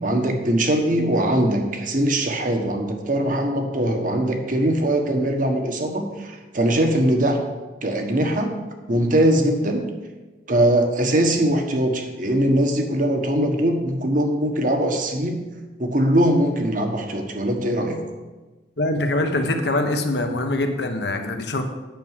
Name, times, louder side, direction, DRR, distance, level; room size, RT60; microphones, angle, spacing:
voice 1, 0.0-7.4 7.8-8.5 8.9-9.8 10.5-15.4 15.8-18.0, right 1 dB, 50° right, 4 dB, 1.5 m, -21 dB
voice 2, 18.8-21.6, left 2 dB, 70° left, 5 dB, 1.2 m, -23 dB
9.2 x 6.2 x 7.5 m, 1.2 s
head